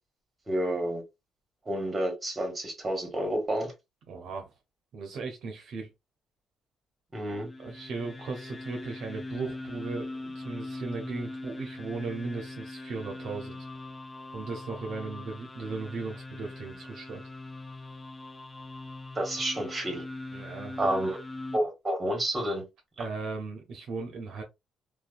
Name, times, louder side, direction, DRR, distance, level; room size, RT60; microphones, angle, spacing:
voice 1, 0.5-1.0 1.6-3.7 7.1-7.5 19.1-20.0 20.8-21.2 21.5-22.6 23.0-23.1, right 1 dB, 25° right, 1.4 m, -29 dB
voice 2, 4.1-4.5 4.9-5.9 7.6-13.6 14.3-17.2 20.3-20.9 23.0-24.4, right 4 dB, 70° right, 0.7 m, -37 dB
sound 1, 7.3-21.6, left 2 dB, 20° left, 0.4 m, -41 dB
2.7 x 2.2 x 2.4 m
cardioid pair, 90°, 0 cm